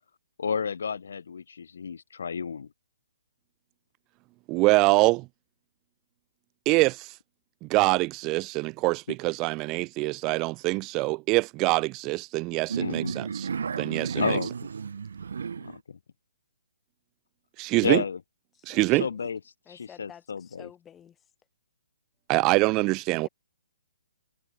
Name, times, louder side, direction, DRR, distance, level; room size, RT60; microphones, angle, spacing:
voice 1, 0.4-2.7 12.8-13.1 14.2-14.5 15.6-16.0 17.8-18.2 19.0-19.4 20.0-20.7, left 6 dB, 70° left, 1.5 m, -31 dB
voice 2, 4.5-5.2 6.7-7.2 7.6-13.5 13.8-14.4 17.6-18.0 18.7-19.1 22.3-23.3, right 23 dB, 25° right, 0.3 m, -24 dB
sound 1, 12.7-15.8, right 6 dB, 70° right, 1.4 m, -33 dB
voice 3, 18.5-19.2 19.7-21.3 23.2-23.3, left 9 dB, 15° left, 5.7 m, -51 dB
hypercardioid pair, 140°, 0 cm